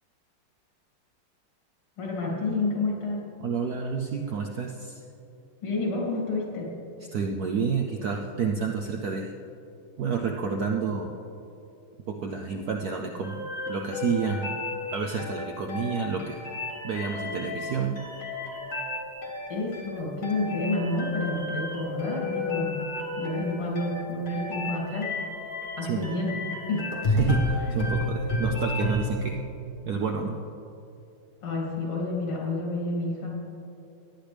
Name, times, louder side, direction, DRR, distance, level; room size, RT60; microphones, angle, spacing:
voice 1, 2.0-3.3 5.6-6.7 19.5-22.8 23.2-25.2 25.8-26.4 26.7-26.9 27.6-27.7 31.4-33.4, left 2 dB, 90° left, -3 dB, 3.4 m, -29 dB
voice 2, 3.4-5.0 7.1-9.3 10.0-11.1 12.1-13.4 13.7-14.5 14.9-16.4 16.8-18.0 25.8-26.0 27.1-29.4 29.8-30.4, right 6 dB, 75° right, 2 dB, 0.8 m, -29 dB
sound 1, 13.2-29.0, left 2 dB, 30° left, 1.2 m, -31 dB
17.5 x 10.0 x 3.4 m, 2.8 s
omnidirectional pair, 2.4 m